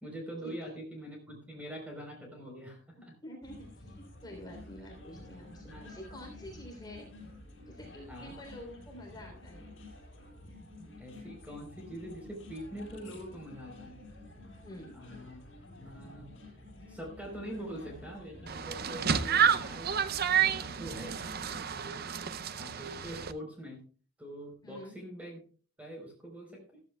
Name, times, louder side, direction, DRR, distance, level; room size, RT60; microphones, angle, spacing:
voice 1, 0.0-3.1 5.7-5.9 8.1-8.4 11.0-14.0 14.9-15.4 15.8-16.3 16.9-22.0 22.5-23.8 24.2-25.4 25.8-26.8, equal, 5° right, 1 dB, 3.9 m, -44 dB
voice 2, 3.0-7.1 7.7-9.6 14.6-15.0 24.6-25.0, left 1 dB, 20° left, 0 dB, 3.4 m, -48 dB
sound 1, 3.4-21.6, left 2 dB, 55° left, 7.1 m, -50 dB
sound 2, 18.5-23.3, right 8 dB, 45° right, 0.6 m, -30 dB
14.5 x 14.5 x 2.3 m, 0.39 s
head